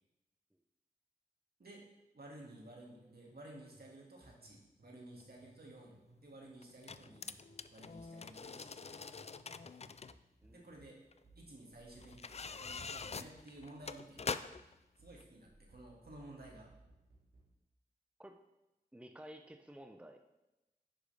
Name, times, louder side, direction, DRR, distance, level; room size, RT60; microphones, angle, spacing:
voice 1, 2.1-7.3 7.7-9.0 10.5-11.0 11.4-12.2 12.6-14.2 15.0-16.7, right 1 dB, 70° right, -2 dB, 2.1 m, -54 dB
sound 1, 2.6-3.5 3.7-7.2 7.5-17.6, right 2 dB, 90° right, 2.1 m, -64 dB
sound 2, 5.2-5.3 6.6-10.1 11.1-11.2 12.0-14.7 15.2-15.3, left 5 dB, 40° left, 0.4 m, -44 dB
voice 2, 10.4-10.7 18.2-18.4 18.9-20.2, equal, 5° right, 6 dB, 0.7 m, -53 dB
9.9 x 6.3 x 3.4 m, 0.97 s
cardioid pair, 40°, 17 cm